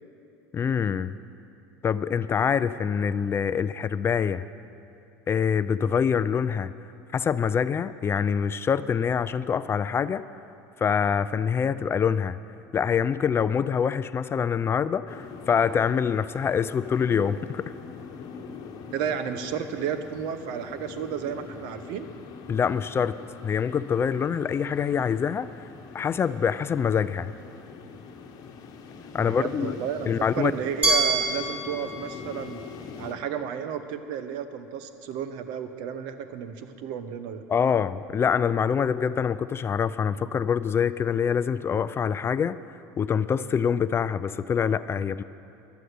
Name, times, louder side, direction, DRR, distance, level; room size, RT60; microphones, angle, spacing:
voice 1, 0.5-1.2 1.8-4.4 5.3-6.7 7.1-10.2 10.8-12.4 12.7-17.7 22.5-23.2 23.4-25.7 25.9-27.3 29.1-29.8 30.1-30.5 37.5-42.6 43.0-45.2, left 7 dB, 30° left, 15 dB, 0.4 m, -25 dB
sound 1, 15.1-33.1, left 5 dB, 45° left, 1.2 m, -43 dB
voice 2, 18.9-22.1 29.2-32.6 33.0-37.4, right 8 dB, 65° right, 10 dB, 0.9 m, -32 dB
Glass, 30.8-33.7, right 3 dB, 15° right, 2.9 m, -28 dB
11.5 x 7.8 x 9.3 m, 2.8 s
hypercardioid pair, 85°, 9 cm